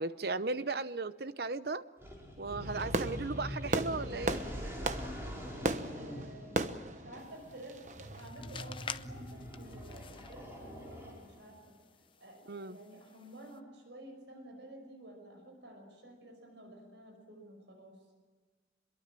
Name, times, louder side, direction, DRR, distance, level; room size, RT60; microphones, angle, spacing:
voice 1, 0.0-1.8 2.4-4.4 12.5-12.8, right 3 dB, 55° right, 14 dB, 0.8 m, -36 dB
sound 1, 2.0-11.5, equal, 15° right, 5.3 m, -44 dB
Fireworks, 2.6-8.2, right 2 dB, 40° right, 1.1 m, -37 dB
voice 2, 5.8-6.6 6.9-11.8 12.2-18.0, right 1 dB, 70° right, 4 dB, 5.5 m, -51 dB
sound 2, 7.2-13.6, left 6 dB, 25° left, 0.7 m, -50 dB
25.5 x 22.5 x 7.6 m, 1.4 s
head